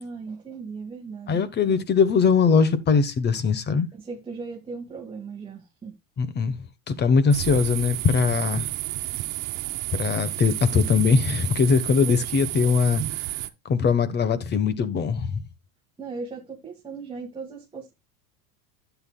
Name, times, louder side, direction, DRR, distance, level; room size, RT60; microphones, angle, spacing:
voice 1, 0.0-1.8 3.9-6.0 12.0-12.4 16.0-17.9, right 4 dB, 10° right, 1.8 m, -37 dB
voice 2, 1.3-3.9 6.2-6.5 6.9-8.7 9.9-13.0 13.6-15.4, left 5 dB, 25° left, 1.1 m, -21 dB
sound 1, 7.3-13.5, right 17 dB, 70° right, 1.3 m, -31 dB
12.0 x 8.2 x 2.3 m
supercardioid pair, 130°, 42 cm